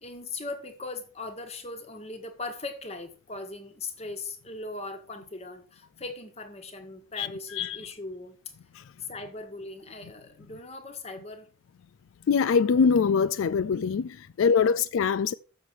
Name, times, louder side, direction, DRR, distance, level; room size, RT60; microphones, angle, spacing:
voice 1, 0.0-8.4 9.0-11.5 14.4-14.8, left 3 dB, 30° left, 1.4 m, -39 dB
voice 2, 7.2-7.8 8.8-8.9 12.3-15.3, left 6 dB, 75° left, 0.3 m, -24 dB
7.2 x 6.5 x 6.2 m
head